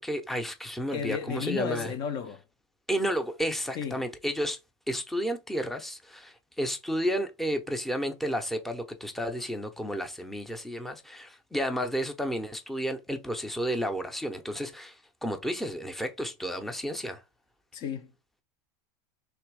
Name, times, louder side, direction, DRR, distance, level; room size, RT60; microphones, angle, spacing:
voice 1, 0.0-1.9 2.9-4.6 4.9-17.2, equal, ahead, 0.7 m, -32 dB
voice 2, 0.9-2.4 3.7-4.0 17.7-18.1, left 7 dB, 45° left, 0.6 m, -33 dB
3.4 x 2.9 x 4.6 m
supercardioid pair, 130°, 13 cm